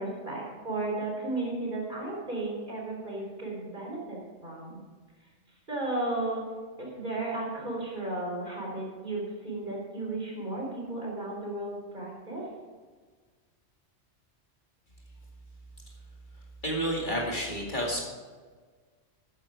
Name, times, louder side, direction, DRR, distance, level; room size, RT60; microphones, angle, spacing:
voice 1, 0.0-4.8 5.7-6.4 6.8-12.5, right 2 dB, 40° right, -3 dB, 4.2 m, -34 dB
voice 2, 16.6-18.0, equal, 40° left, -2 dB, 2.4 m, -30 dB
13.0 x 9.5 x 5.0 m, 1.5 s
omnidirectional pair, 1.2 m